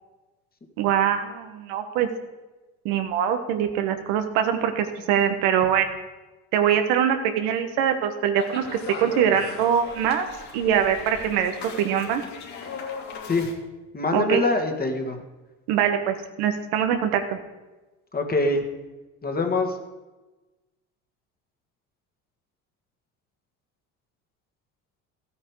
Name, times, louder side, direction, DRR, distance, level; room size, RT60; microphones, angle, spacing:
voice 1, 0.8-2.1 2.8-6.0 6.5-10.3 10.5-11.5 11.8-12.2 14.1-14.4 15.7-17.2, right 9 dB, 75° right, 7 dB, 1.3 m, -23 dB
sound 1, 8.4-13.5, left 5 dB, 45° left, 3.1 m, -38 dB
voice 2, 13.9-15.2 18.1-18.6 19.2-19.8, left 2 dB, 25° left, 4 dB, 2.0 m, -24 dB
13.5 x 8.9 x 4.8 m, 1.1 s
hypercardioid pair, 75°, 38 cm